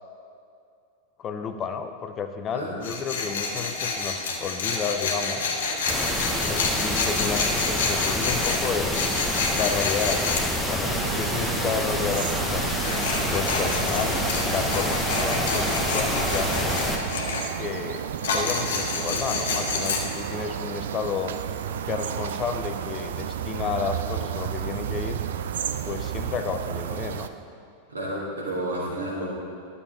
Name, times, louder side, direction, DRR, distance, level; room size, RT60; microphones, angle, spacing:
voice 1, 1.2-5.6 6.4-9.0 9.5-12.7 13.3-16.8 17.6-21.3 21.9-25.2 25.9-27.3, left 6 dB, 30° left, 7 dB, 0.6 m, -31 dB
Tools, 2.8-10.5 12.7-17.4 18.2-20.0, left 4 dB, 60° left, 1.3 m, -28 dB
sound 1, 5.9-17.0, left 1 dB, ahead, 1.1 m, -27 dB
sound 2, 10.8-27.3, right 9 dB, 60° right, 0.4 m, -32 dB
voice 2, 27.9-29.3, right 1 dB, 75° right, -5 dB, 2.5 m, -31 dB
12.0 x 6.8 x 4.2 m, 2.5 s
figure-of-eight pair, 90°, 0 cm